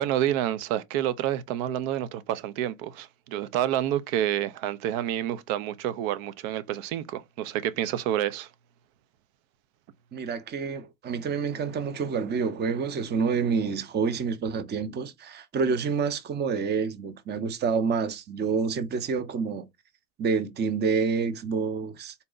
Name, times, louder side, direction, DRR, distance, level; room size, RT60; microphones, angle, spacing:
voice 1, 0.0-8.5, right 12 dB, 75° right, 0.6 m, -28 dB
voice 2, 10.1-19.7 20.2-22.1, right 5 dB, 25° right, 0.6 m, -28 dB
4.1 x 2.2 x 3.8 m
supercardioid pair, 105°, 42 cm